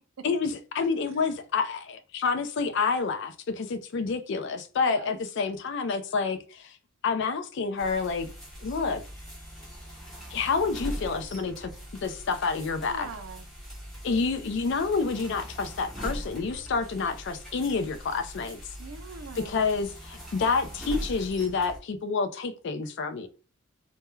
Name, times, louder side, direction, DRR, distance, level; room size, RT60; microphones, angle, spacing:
voice 1, 0.2-6.8 7.0-8.3 8.6-9.0 10.3-11.7 12.0-13.1 14.0-18.6 19.4-23.3, left 4 dB, 55° left, 0.4 m, -28 dB
voice 2, 4.8-5.2 12.8-13.5 18.8-19.6, right 4 dB, 75° right, 0.4 m, -42 dB
sound 1, 7.8-21.8, equal, ahead, 0.6 m, -41 dB
2.2 x 2.2 x 3.0 m
head